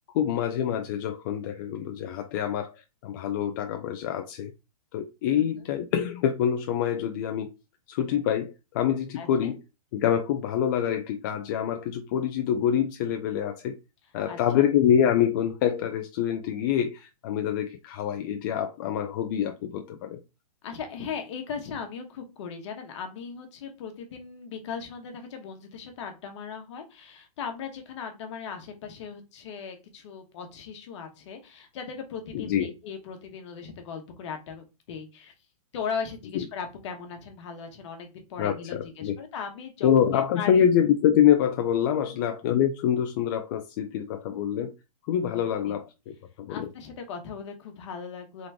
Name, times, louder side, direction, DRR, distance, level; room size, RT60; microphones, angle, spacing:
voice 1, 0.1-4.5 4.9-7.5 7.9-9.6 9.9-13.8 14.1-20.2 32.3-32.7 36.3-36.4 38.4-39.2 39.8-44.7 45.1-46.7, left 9 dB, 35° left, 0.4 m, -26 dB
voice 2, 5.3-5.6 9.1-9.5 14.3-14.7 20.6-35.3 35.7-40.7 42.1-42.2 45.6-45.8 46.5-48.5, left 6 dB, 50° left, 1.3 m, -38 dB
3.8 x 3.1 x 3.4 m
hypercardioid pair, 155°, 19 cm